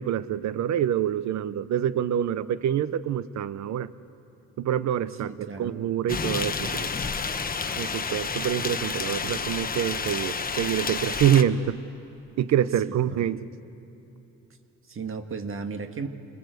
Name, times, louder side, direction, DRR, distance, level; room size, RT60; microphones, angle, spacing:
voice 1, 0.0-3.9 4.6-6.9 7.8-11.8 12.4-13.4, right 10 dB, 65° right, 16 dB, 0.8 m, -26 dB
voice 2, 5.2-5.7 12.8-13.3 14.9-16.1, right 5 dB, 45° right, 7 dB, 1.7 m, -35 dB
sound 1, 6.1-11.4, left 5 dB, 30° left, 1.1 m, -30 dB
27.0 x 21.0 x 8.0 m, 2.9 s
cardioid pair, 90°, 30 cm